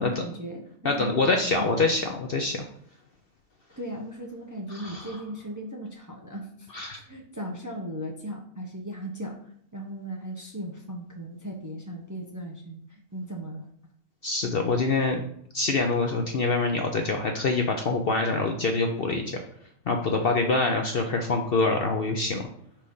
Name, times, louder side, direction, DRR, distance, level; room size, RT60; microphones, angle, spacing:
voice 1, 0.0-1.7 3.8-9.3 9.7-13.7, equal, 15° right, 0 dB, 0.6 m, -37 dB
voice 2, 0.8-2.7 4.7-5.1 6.7-7.0 14.2-15.2 15.5-19.4 19.9-22.4, left 3 dB, 55° left, 3 dB, 0.7 m, -25 dB
4.9 x 4.4 x 5.4 m, 0.66 s
omnidirectional pair, 1.5 m